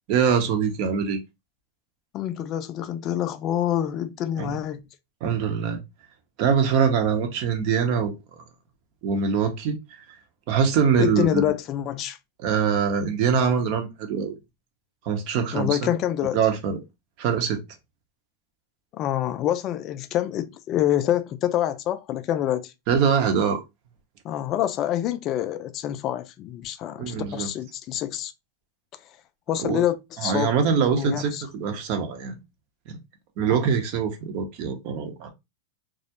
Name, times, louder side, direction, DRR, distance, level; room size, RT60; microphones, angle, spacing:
voice 1, 0.1-1.2 4.4-4.6 5.2-5.8 6.4-8.1 9.0-9.8 10.5-11.4 12.4-14.3 15.0-15.9 16.3-16.8 17.2-17.6 22.9-23.6 27.0-27.5 29.6-29.8 30.2-32.4 32.9-33.0 33.4-35.3, right 6 dB, 55° right, 0.7 m, -23 dB
voice 2, 2.1-4.8 11.0-12.2 15.5-16.4 18.9-22.7 24.2-28.3 29.5-30.5 30.9-31.4, left 11 dB, 40° left, 0.3 m, -26 dB
2.3 x 2.0 x 2.7 m
hypercardioid pair, 115°, 0 cm